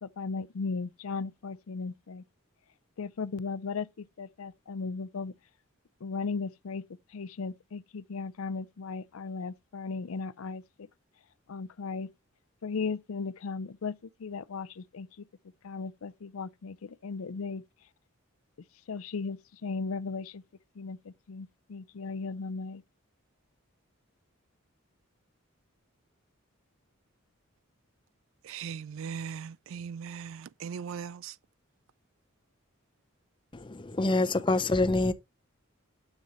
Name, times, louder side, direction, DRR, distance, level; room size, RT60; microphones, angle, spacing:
voice 1, 0.0-2.2 3.0-5.3 6.0-6.8 7.1-10.9 11.5-12.1 12.6-15.2 15.6-17.6 18.9-20.4 20.8-22.8, left 4 dB, 85° left, 0.5 m, -36 dB
voice 2, 28.4-31.3, right 7 dB, 70° right, 0.3 m, -39 dB
voice 3, 33.5-35.1, left 2 dB, 25° left, 0.6 m, -26 dB
7.2 x 6.5 x 3.0 m
head